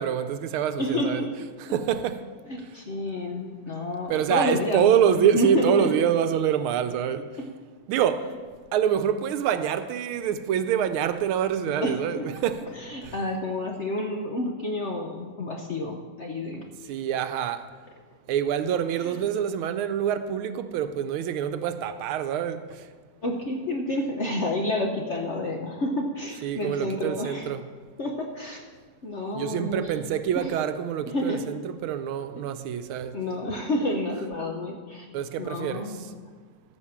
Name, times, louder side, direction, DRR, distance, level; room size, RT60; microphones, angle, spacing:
voice 1, 0.0-1.2 1.6-2.2 4.1-7.2 7.9-8.2 8.7-12.6 16.9-17.6 18.3-22.6 26.4-27.6 29.3-33.1 35.1-35.9, right 9 dB, 80° right, 1.5 m, -25 dB
voice 2, 0.8-1.3 2.5-6.1 7.4-7.5 11.8-12.3 12.7-16.7 19.0-19.2 23.2-27.5 28.0-28.6 29.0-29.9 30.3-30.5 31.1-31.4 33.1-35.1 35.4-36.0, left 1 dB, 50° left, 0.8 m, -29 dB
14.5 x 5.2 x 7.3 m
omnidirectional pair, 2.3 m